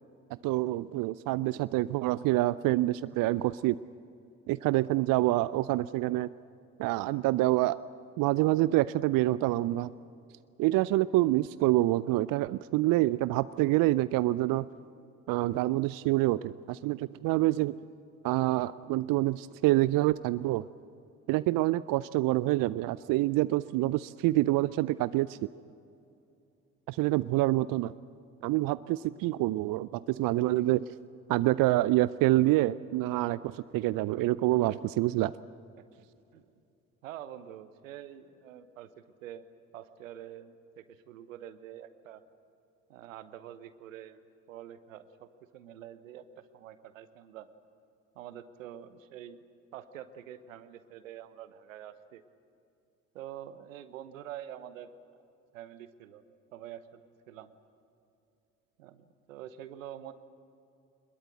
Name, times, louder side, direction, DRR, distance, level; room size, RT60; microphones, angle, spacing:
voice 1, 0.4-3.8 4.5-6.3 6.8-7.8 8.2-9.9 10.6-14.7 15.3-17.7 18.2-20.7 21.3-25.4 26.9-27.9 28.4-30.9 31.3-35.3, right 17 dB, 60° right, 17 dB, 0.5 m, -27 dB
voice 2, 37.0-39.4 39.7-42.2 42.9-44.2 44.5-46.2 46.5-47.5 48.1-49.4 49.7-52.2 53.1-54.9 55.5-56.2 56.5-57.0 57.3-57.5 58.8-60.1, right 11 dB, 80° right, 13 dB, 1.0 m, -46 dB
23.0 x 21.5 x 7.8 m, 2.7 s
figure-of-eight pair, 45°, 39 cm